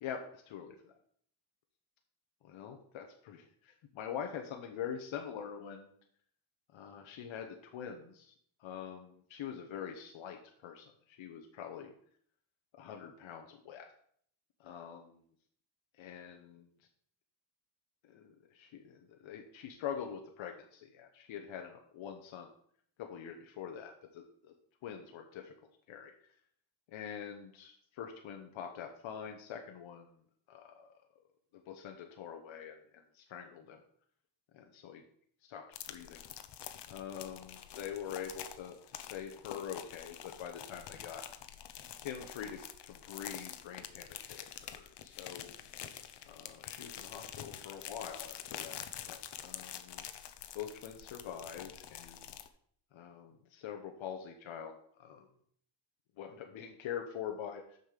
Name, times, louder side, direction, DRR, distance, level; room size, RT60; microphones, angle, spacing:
voice 1, 0.0-0.9 2.4-5.9 6.7-8.3 8.6-11.9 12.8-13.9 14.6-15.2 16.0-16.7 18.1-22.5 23.0-24.5 24.8-25.5 25.9-26.1 26.9-30.1 30.5-30.9 31.5-33.8 34.5-35.0 35.4-35.6 35.9-36.2 36.9-41.2 42.0-44.4 44.6-45.5 46.2-50.1 50.5-52.2 52.9-55.3 56.2-57.8, left 8 dB, 85° left, 3 dB, 1.0 m, -44 dB
sound 1, 35.7-52.5, left 10 dB, 60° left, 0.9 m, -47 dB
6.7 x 5.4 x 6.5 m, 0.62 s
cardioid pair, 115°, 46 cm